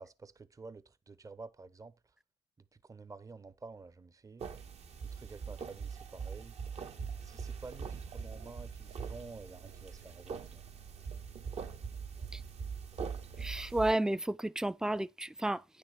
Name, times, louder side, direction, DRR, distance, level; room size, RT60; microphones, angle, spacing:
voice 1, 0.0-1.9 2.7-4.5 5.1-6.6 7.2-10.6, right 3 dB, 25° right, 0.9 m, -50 dB
sound 1, 4.4-13.9, right 6 dB, 60° right, 1.5 m, -42 dB
voice 2, 13.4-15.8, right 1 dB, 5° right, 0.4 m, -32 dB
9.5 x 6.6 x 4.9 m
supercardioid pair, 70°, 13 cm